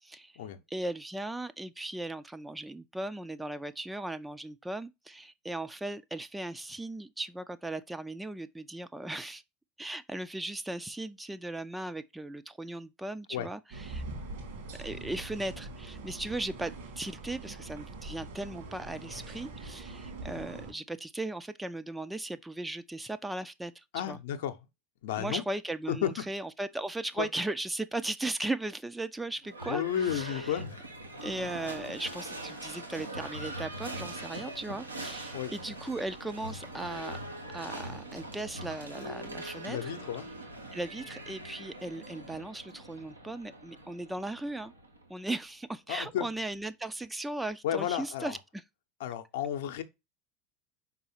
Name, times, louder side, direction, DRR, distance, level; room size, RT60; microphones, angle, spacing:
voice 1, 0.0-0.3 0.7-9.4 9.8-14.0 14.8-24.2 25.2-30.6 31.2-37.2 37.5-39.9 40.7-44.7 45.1-48.4, right 2 dB, 10° right, 0.5 m, -37 dB
sound 1, 13.7-20.7, right 2 dB, 60° right, 2.3 m, -43 dB
voice 2, 23.9-24.6 25.0-25.4 25.9-26.2 27.2-27.3 29.7-30.9 35.3-35.5 39.7-40.3 45.9-46.3 47.6-48.4 49.0-49.8, left 10 dB, 65° left, 0.8 m, -32 dB
Livestock farm animals working animals / Bell, 29.4-45.3, right 1 dB, 90° right, 1.2 m, -42 dB
5.4 x 4.1 x 4.3 m
figure-of-eight pair, 75°, 0 cm